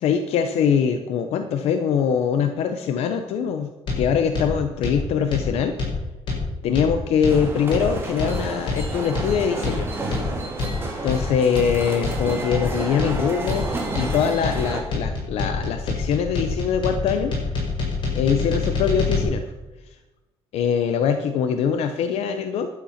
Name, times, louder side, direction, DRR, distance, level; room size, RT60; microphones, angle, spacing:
voice 1, 0.0-3.7 4.0-5.7 6.6-9.9 10.2-10.3 11.0-13.7 14.0-17.3 18.1-19.4 20.5-22.7, left 7 dB, 85° left, 7 dB, 0.8 m, -23 dB
sound 1, 3.9-19.2, left 4 dB, 50° left, 5.2 m, -26 dB
sound 2, 7.3-14.8, right 2 dB, 25° right, 2.2 m, -31 dB
11.5 x 8.5 x 5.8 m, 1.1 s
cardioid pair, 165°, 10 cm